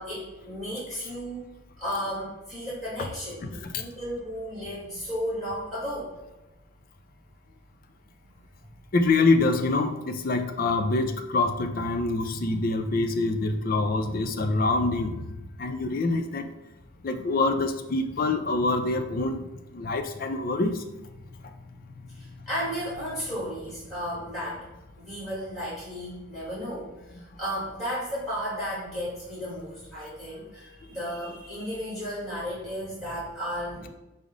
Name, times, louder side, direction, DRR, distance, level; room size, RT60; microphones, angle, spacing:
voice 1, 0.0-1.4 1.8-6.1 22.1-24.6 25.0-33.9, equal, ahead, -8 dB, 1.4 m, -34 dB
voice 2, 8.9-16.5 17.0-19.5 19.7-20.8, left 3 dB, 45° left, 7 dB, 0.4 m, -25 dB
5.2 x 2.0 x 4.8 m, 1.0 s
head